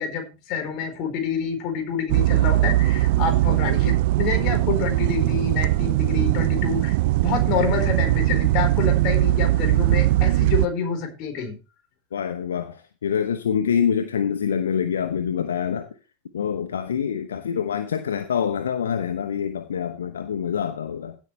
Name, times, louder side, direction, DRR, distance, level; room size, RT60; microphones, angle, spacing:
voice 1, 0.0-11.5, left 6 dB, 40° left, 4.4 m, -28 dB
sound 1, 2.1-10.7, right 16 dB, 50° right, 0.4 m, -20 dB
voice 2, 12.1-15.9 16.3-21.2, left 8 dB, 65° left, 0.9 m, -26 dB
16.0 x 8.4 x 3.3 m
figure-of-eight pair, 90°, 0 cm